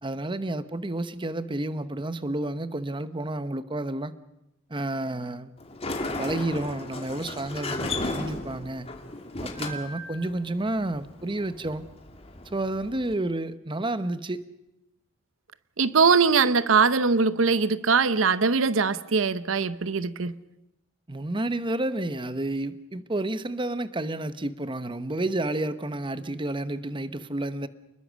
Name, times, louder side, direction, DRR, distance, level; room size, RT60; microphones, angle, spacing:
voice 1, 0.0-4.1 4.7-5.5 6.2-8.9 9.4-11.8 12.5-14.4 21.1-27.7, right 2 dB, 25° right, 1.0 m, -30 dB
Sliding door, 5.6-13.1, left 2 dB, 30° left, 2.5 m, -35 dB
voice 2, 15.8-20.3, right 5 dB, 85° right, 0.8 m, -21 dB
29.0 x 21.0 x 6.3 m
head